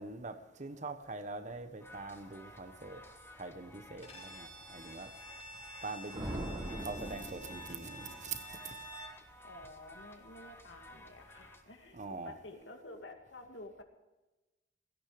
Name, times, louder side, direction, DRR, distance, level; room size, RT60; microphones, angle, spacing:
voice 1, 0.0-3.0 3.4-5.1 5.8-8.8 11.9-12.4, right 3 dB, 40° right, 9 dB, 1.3 m, -44 dB
sound 1, 1.8-11.6, left 1 dB, 15° left, 1.3 m, -55 dB
Bowed string instrument, 4.0-9.2, right 1 dB, 35° left, 2.8 m, -49 dB
sound 2, 6.1-8.4, right 1 dB, 20° right, 3.3 m, -42 dB
voice 2, 9.4-13.8, left 2 dB, 80° left, 4 dB, 2.3 m, -51 dB
17.0 x 13.0 x 5.1 m, 1.1 s
head